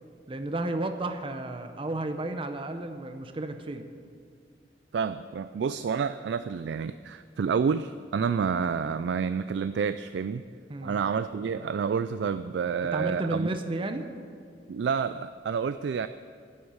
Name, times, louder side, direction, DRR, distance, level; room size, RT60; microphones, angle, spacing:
voice 1, 0.3-3.9 10.7-11.0 12.9-14.1, right 2 dB, 30° right, 7 dB, 0.6 m, -32 dB
voice 2, 4.9-10.4 10.8-13.5 14.7-16.1, right 6 dB, 70° right, 12 dB, 0.3 m, -29 dB
10.5 x 7.9 x 8.7 m, 2.2 s
head